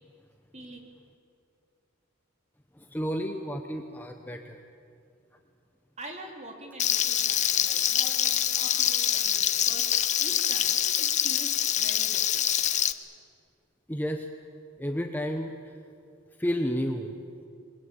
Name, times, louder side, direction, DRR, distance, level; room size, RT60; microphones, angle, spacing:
voice 1, 0.5-0.9 6.0-9.9 10.2-12.5, right 1 dB, 30° right, 2 dB, 3.5 m, -45 dB
voice 2, 2.8-4.6 13.9-14.3 14.8-15.5 16.4-17.1, equal, 10° left, 4 dB, 1.0 m, -31 dB
Frying (food), 6.8-12.9, left 10 dB, 35° left, 0.8 m, -25 dB
27.5 x 21.5 x 9.0 m, 2.5 s
head